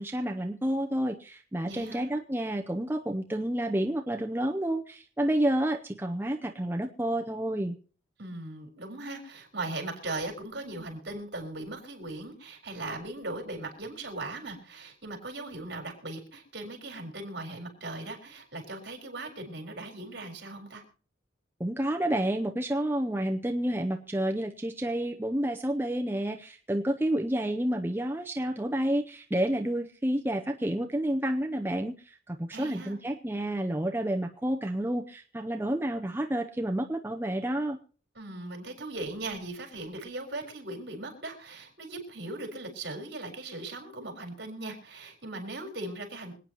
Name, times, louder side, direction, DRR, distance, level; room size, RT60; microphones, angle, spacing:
voice 1, 0.0-7.8 21.6-37.8, right 1 dB, 10° right, 3 dB, 0.6 m, -30 dB
voice 2, 1.6-2.1 8.2-20.8 32.5-33.0 38.2-46.4, right 2 dB, 60° right, 3 dB, 4.2 m, -39 dB
26.0 x 9.1 x 3.0 m, 0.40 s
head